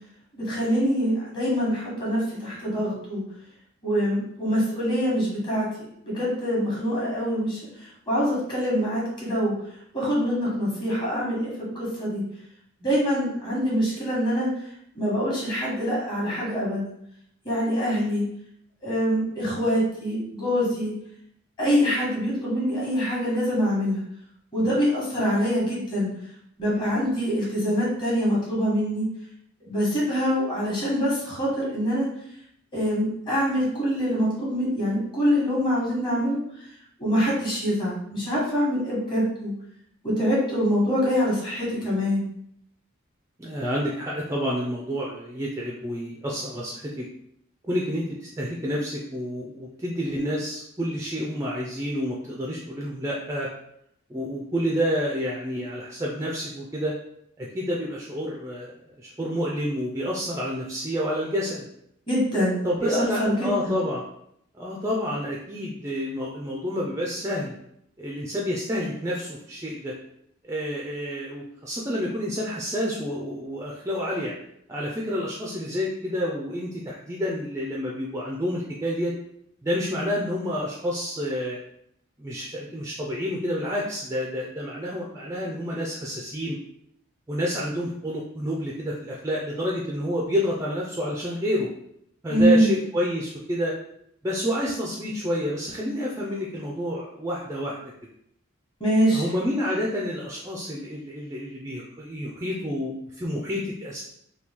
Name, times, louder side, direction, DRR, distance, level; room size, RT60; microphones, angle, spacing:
voice 1, 0.3-3.2 3.8-5.7 6.0-7.6 8.1-9.5 9.9-12.2 12.8-14.5 15.0-16.9 17.4-18.2 18.8-20.9 21.6-24.0 24.5-26.1 26.6-29.1 29.6-32.1 32.7-36.4 37.0-39.5 40.0-42.2 62.1-63.7 92.3-92.7 98.8-99.2, equal, 25° left, -5 dB, 1.1 m, -24 dB
voice 2, 43.4-47.0 47.7-53.5 54.1-56.9 57.4-58.7 59.0-61.6 62.6-64.0 64.5-67.6 68.0-69.9 70.4-74.3 74.7-79.1 79.6-81.6 82.2-86.6 87.3-91.7 92.2-93.7 94.2-97.8 99.1-104.0, equal, 15° right, -3 dB, 0.3 m, -29 dB
2.9 x 2.3 x 3.5 m, 0.72 s
head